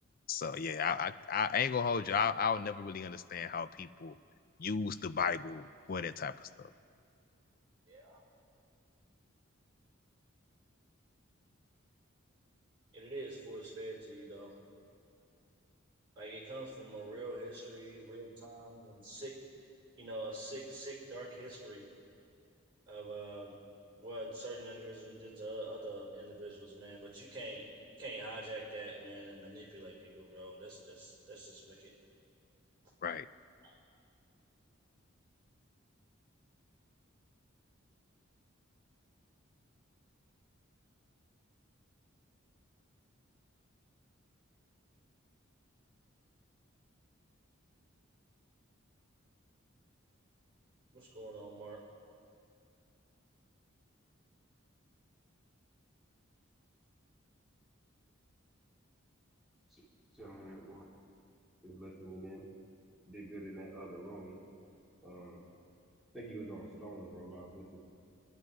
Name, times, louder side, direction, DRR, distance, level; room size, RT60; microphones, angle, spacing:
voice 1, 0.3-4.1 4.6-6.7 33.0-33.3, left 6 dB, 45° left, 13 dB, 0.4 m, -34 dB
voice 2, 7.9-8.2 12.9-14.5 16.1-19.3 20.0-21.8 22.9-23.5 24.0-27.6 28.0-31.9 33.6-33.8 50.9-51.8, right 1 dB, 25° right, -3 dB, 5.0 m, -45 dB
voice 3, 60.1-60.9 61.6-62.4 63.1-64.4 65.0-65.4 66.1-67.8, right 1 dB, ahead, -8 dB, 2.8 m, -47 dB
27.0 x 11.0 x 4.8 m, 2.4 s
head